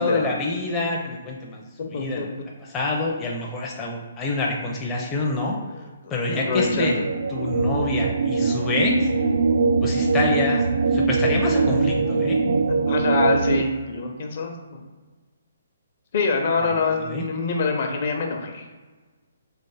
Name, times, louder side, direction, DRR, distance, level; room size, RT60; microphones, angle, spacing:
voice 1, 0.0-5.6 6.1-7.0 7.3-9.1 9.8-10.7 10.9-12.4 16.6-17.3, left 3 dB, 15° left, -2 dB, 0.6 m, -27 dB
voice 2, 1.9-2.3 6.0-7.0 12.8-14.8 16.1-18.6, left 4 dB, 50° left, 2 dB, 0.8 m, -25 dB
sound 1, 6.3-13.6, right 4 dB, 60° right, 0.4 m, -22 dB
3.4 x 3.2 x 4.1 m, 1.3 s
figure-of-eight pair, 135°, 0 cm